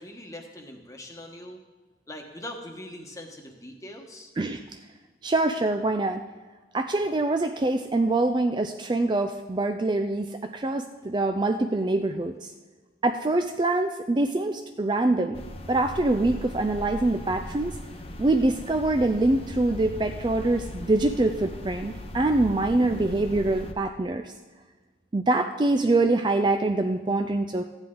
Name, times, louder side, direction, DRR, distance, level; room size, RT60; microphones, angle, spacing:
voice 1, 0.0-1.6 2.1-4.3, left 1 dB, 20° left, 3 dB, 1.2 m, -41 dB
voice 2, 5.2-6.2 6.7-10.3 10.5-12.5 13.0-15.4 15.7-17.7 18.2-24.3 25.1-27.6, right 2 dB, 25° right, 6 dB, 0.4 m, -24 dB
sound 1, 15.3-23.7, left 1 dB, 35° left, 0.8 m, -38 dB
14.5 x 9.7 x 3.8 m, 1.3 s
head